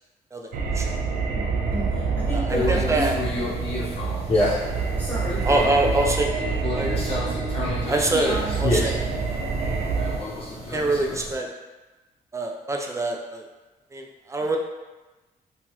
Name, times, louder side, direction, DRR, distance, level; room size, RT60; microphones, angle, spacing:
voice 1, 0.3-0.9 2.3-3.2 5.4-6.3 6.7-7.3 7.9-9.5 10.7-11.5 12.3-13.4 13.9-14.6, right 2 dB, 20° right, 2 dB, 0.4 m, -25 dB
sound 1, 0.5-10.2, right 4 dB, 85° right, 0.4 m, -27 dB
voice 2, 1.3-3.1 4.7-5.5 8.2-8.6, equal, 15° left, -9 dB, 1.3 m, -32 dB
Conversation, 2.5-11.3, left 1 dB, 40° left, 0.8 m, -29 dB
2.9 x 2.3 x 2.9 m, 1.1 s
cardioid pair, 90°, 15 cm